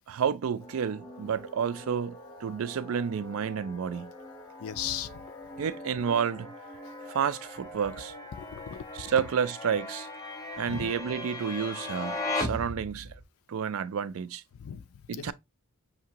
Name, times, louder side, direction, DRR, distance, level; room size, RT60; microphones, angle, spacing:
voice 1, 0.1-2.1 2.4-4.1 5.6-6.5 7.1-8.1 8.9-10.1 10.6-13.1 13.5-14.4 15.1-15.3, right 7 dB, 75° right, 0.4 m, -30 dB
sound 1, 0.6-13.2, left 2 dB, 15° left, 0.9 m, -39 dB
voice 2, 4.6-5.2 8.4-9.1 10.7-10.9 14.6-15.3, left 9 dB, 85° left, 0.4 m, -38 dB
5.8 x 2.7 x 2.8 m
head